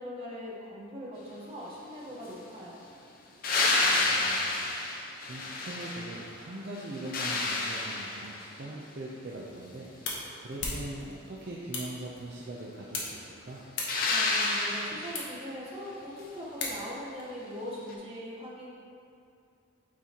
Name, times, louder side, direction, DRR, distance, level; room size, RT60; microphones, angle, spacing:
voice 1, 0.0-2.8 14.1-18.7, equal, 30° right, -6 dB, 1.1 m, -41 dB
sound 1, 3.4-6.3 6.7-8.5 13.9-15.3 17.9-18.0, left 2 dB, 45° left, 0.6 m, -29 dB
voice 2, 3.8-4.7 5.3-13.6, right 1 dB, 50° right, -4 dB, 0.5 m, -41 dB
sound 2, 9.4-17.2, left 3 dB, 60° left, 1.0 m, -41 dB
8.4 x 4.0 x 2.9 m, 2.4 s
head